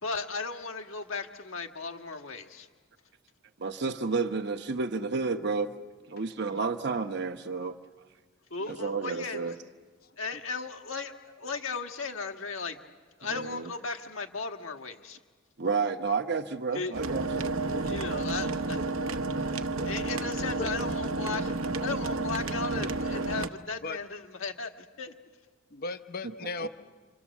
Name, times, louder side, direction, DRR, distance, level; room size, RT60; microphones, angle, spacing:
voice 1, 0.0-2.7 6.4-6.6 8.5-9.5 10.2-12.8 13.2-15.2 16.7-16.9 17.8-18.8 19.8-25.1, left 4 dB, 70° left, 5 dB, 1.7 m, -36 dB
voice 2, 3.6-5.8 6.1-7.8 8.7-9.6 13.3-13.7 15.6-17.5, right 4 dB, 55° right, 7 dB, 1.0 m, -31 dB
voice 3, 10.0-10.4 17.7-18.0 20.5-20.7 23.8-24.0 25.7-26.7, left 3 dB, 45° left, 10 dB, 0.7 m, -37 dB
sound 1, 16.9-23.5, right 2 dB, 80° right, 1.0 m, -31 dB
29.0 x 26.5 x 7.2 m, 1.5 s
head